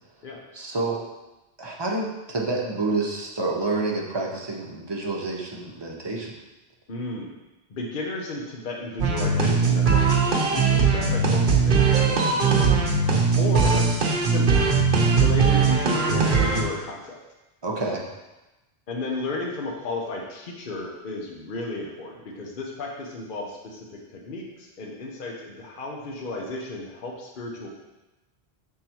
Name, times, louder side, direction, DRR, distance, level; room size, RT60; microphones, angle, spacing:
voice 1, 0.5-1.0 1.6-6.4 17.6-18.0, right 3 dB, 25° right, -2 dB, 0.9 m, -28 dB
voice 2, 6.9-7.3 7.7-12.8 13.3-13.8 14.2-14.6 15.1-17.2 18.9-27.7, left 2 dB, 55° left, -1 dB, 1.0 m, -33 dB
sound 1, 9.0-16.6, right 5 dB, 50° right, 0.9 m, -20 dB
6.6 x 3.7 x 4.4 m, 1.0 s
omnidirectional pair, 1.1 m